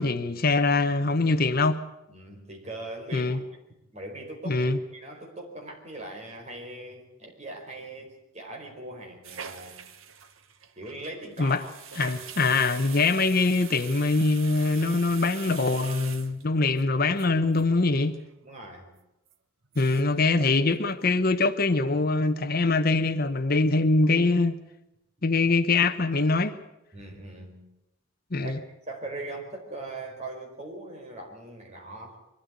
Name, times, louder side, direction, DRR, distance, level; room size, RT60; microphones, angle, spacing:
voice 1, 0.0-1.8 3.1-3.4 4.5-4.8 11.4-11.6 11.9-18.1 19.8-24.5 25.2-26.6 28.3-28.6, left 3 dB, 45° left, 0.9 m, -23 dB
voice 2, 2.1-3.4 3.9-9.7 10.8-11.7 18.4-18.9 26.9-27.7 28.4-28.6 28.9-32.2, right 2 dB, 35° right, 4.5 m, -40 dB
sound 1, 9.2-16.8 17.2-17.3 17.5-17.6 17.9-18.3 18.6-18.7 19.3-19.4 19.6-20.2 20.5-20.6 20.9-21.4 21.7-21.9, right 8 dB, 80° right, 1.3 m, -43 dB
23.0 x 13.0 x 9.5 m
head